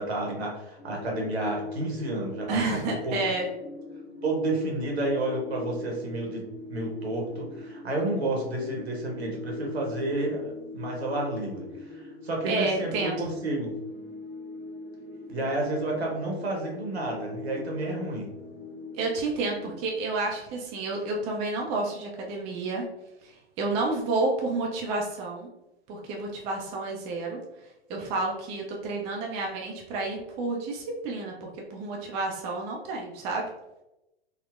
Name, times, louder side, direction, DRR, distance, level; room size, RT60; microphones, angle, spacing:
voice 1, 0.0-3.2 4.2-6.4 6.7-13.7 15.3-18.3, right 1 dB, 75° right, 0 dB, 1.0 m, -30 dB
sound 1, 0.8-19.8, left 2 dB, 30° left, 0.5 m, -41 dB
voice 2, 2.5-3.5 12.5-13.2 18.9-22.8 23.2-25.5 25.9-27.4 27.9-33.4, right 3 dB, 20° right, -1 dB, 0.4 m, -30 dB
3.6 x 2.0 x 2.4 m, 0.92 s
figure-of-eight pair, 105°, 32 cm